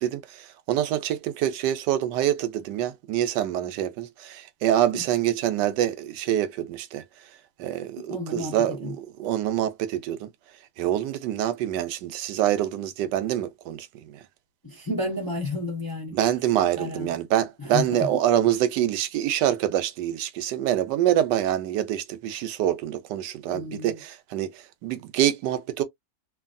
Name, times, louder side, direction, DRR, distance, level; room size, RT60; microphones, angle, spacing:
voice 1, 0.0-7.0 7.6-10.3 10.8-14.2 16.1-25.8, right 11 dB, 90° right, 1.2 m, -26 dB
voice 2, 8.1-8.5 8.8-8.9 14.6-16.2 16.8-17.1 17.6-18.1 23.5-24.0, left 2 dB, 20° left, 0.5 m, -31 dB
3.1 x 2.5 x 2.5 m
omnidirectional pair, 1.8 m